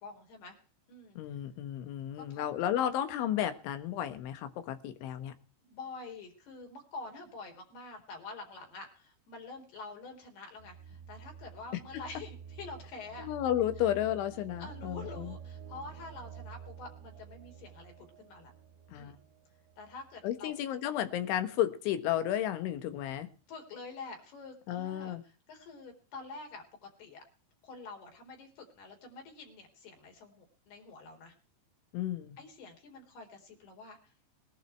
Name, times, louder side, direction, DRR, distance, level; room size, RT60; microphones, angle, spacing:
voice 1, 0.0-0.6 0.9-1.2 2.2-2.5 5.6-13.3 14.6-17.9 18.2-18.5 19.0-19.2 19.8-20.5 23.5-27.2 27.6-31.3 32.4-34.0, left 3 dB, 55° left, 2 dB, 5.7 m, -47 dB
voice 2, 1.2-5.3 13.2-15.4 18.9-19.2 20.2-23.3 24.7-25.2 31.9-32.4, left 11 dB, 80° left, 10 dB, 3.8 m, -33 dB
sound 1, 10.6-20.4, right 7 dB, 85° right, 4.1 m, -49 dB
20.5 x 11.5 x 4.5 m, 0.38 s
omnidirectional pair, 5.5 m